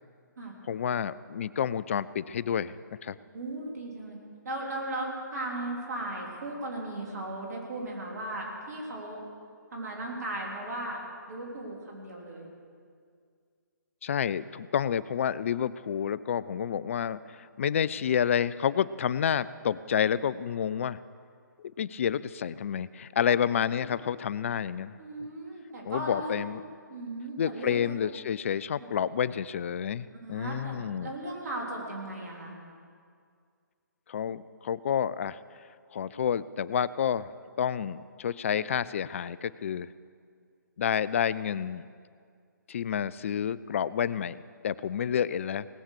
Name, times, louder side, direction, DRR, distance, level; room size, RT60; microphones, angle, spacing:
voice 1, 0.7-2.8 3.0-3.2 14.0-21.0 21.6-24.9 25.8-26.6 27.4-31.1 34.1-35.4 35.9-37.3 37.6-39.9 40.8-41.9 42.7-44.4 44.6-45.7, left 8 dB, 40° left, 18 dB, 0.3 m, -29 dB
voice 2, 3.3-4.2 4.4-9.2 9.7-11.0 11.3-12.5 25.0-26.4 26.9-28.0 28.8-28.9 30.1-32.5, right 1 dB, 55° right, -1 dB, 3.6 m, -37 dB
19.0 x 7.2 x 6.7 m, 2.1 s
figure-of-eight pair, 135°, 10 cm